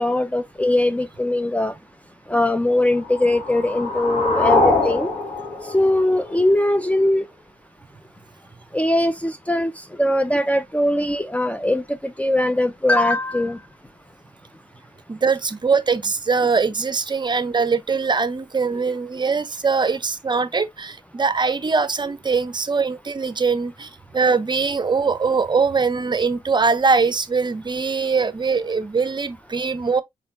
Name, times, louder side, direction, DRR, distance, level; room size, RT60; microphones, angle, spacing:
voice 1, 0.0-1.8 2.3-5.1 5.6-7.3 8.7-13.6, left 1 dB, 10° left, 0.5 m, -21 dB
sound 1, 2.9-6.9, left 2 dB, 55° left, 1.8 m, -23 dB
voice 2, 15.1-30.0, right 4 dB, 35° right, 0.7 m, -22 dB
4.1 x 3.8 x 2.6 m
cardioid pair, 55°, 14 cm